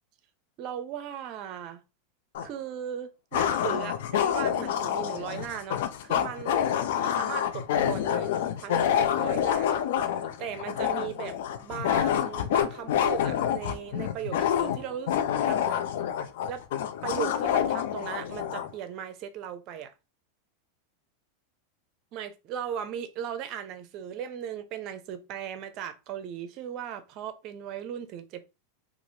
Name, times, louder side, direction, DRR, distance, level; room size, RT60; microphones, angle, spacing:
voice 1, 0.6-1.8 2.4-8.3 8.6-9.8 10.2-15.8 16.5-16.7 17.0-19.9 22.1-28.4, right 9 dB, 45° right, 0.6 m, -37 dB
sound 1, 2.3-2.5 3.3-18.7, left 9 dB, 70° left, 0.4 m, -27 dB
3.0 x 2.5 x 2.7 m
hypercardioid pair, 115°, 0 cm